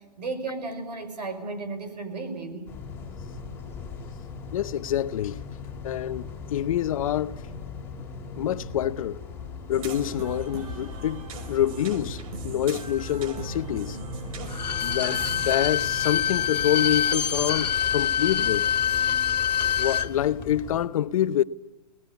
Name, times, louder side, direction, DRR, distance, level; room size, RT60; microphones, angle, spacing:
voice 1, 0.2-2.7, right 3 dB, 80° right, 5.8 m, -34 dB
sound 1, 2.7-20.9, left 4 dB, 10° left, 4.6 m, -39 dB
voice 2, 4.5-5.4 5.8-7.4 8.4-9.2 9.7-14.0 14.8-18.7 19.8-21.4, left 11 dB, 55° left, 0.9 m, -27 dB
sound 2, 9.7-15.6, right 4 dB, 55° right, 2.9 m, -38 dB
Bowed string instrument, 14.5-20.1 20.4-20.5, left 8 dB, 90° left, 1.6 m, -25 dB
26.5 x 19.0 x 8.3 m
hypercardioid pair, 150°, 21 cm